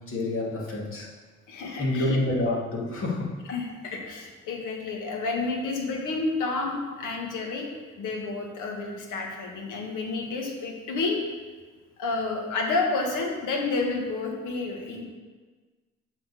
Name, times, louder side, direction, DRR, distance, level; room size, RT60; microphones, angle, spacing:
voice 1, 0.1-1.1 1.8-3.3, left 2 dB, 45° left, -3 dB, 2.3 m, -27 dB
voice 2, 1.5-2.2 3.5-7.7 8.0-11.2 12.0-15.0, left 3 dB, 85° left, 1 dB, 1.6 m, -30 dB
7.5 x 4.3 x 6.9 m, 1.4 s
cardioid pair, 90°, 30 cm